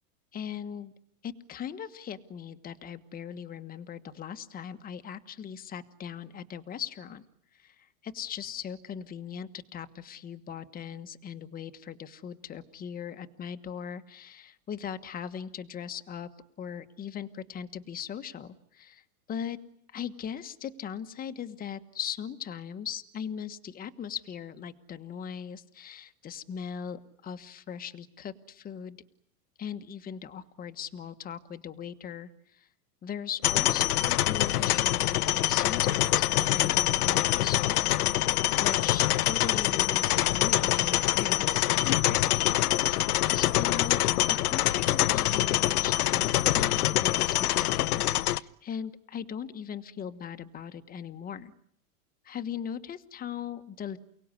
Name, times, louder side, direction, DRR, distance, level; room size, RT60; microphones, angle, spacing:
voice 1, 0.3-0.9 1.2-7.2 7.6-16.3 16.6-19.6 19.9-29.0 29.6-32.7 33.0-38.0 38.6-42.6 43.3-51.5 52.2-54.0, left 8 dB, 20° left, 10 dB, 1.4 m, -39 dB
sound 1, 33.4-48.4, left 15 dB, 85° left, 1.1 m, -25 dB
29.5 x 19.0 x 9.8 m, 0.70 s
supercardioid pair, 145°, 44 cm